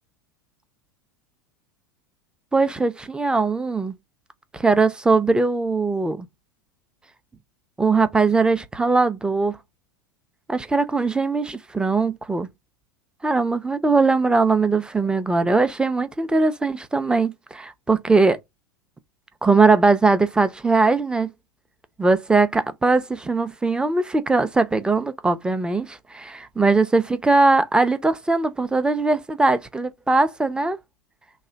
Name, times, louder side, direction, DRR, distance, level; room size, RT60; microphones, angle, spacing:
voice 1, 2.5-3.9 4.5-6.3 7.8-9.6 10.5-12.5 13.2-18.4 19.4-21.3 22.0-30.8, right 3 dB, 5° right, 0.5 m, -20 dB
3.1 x 2.2 x 3.8 m
figure-of-eight pair, 85°, 11 cm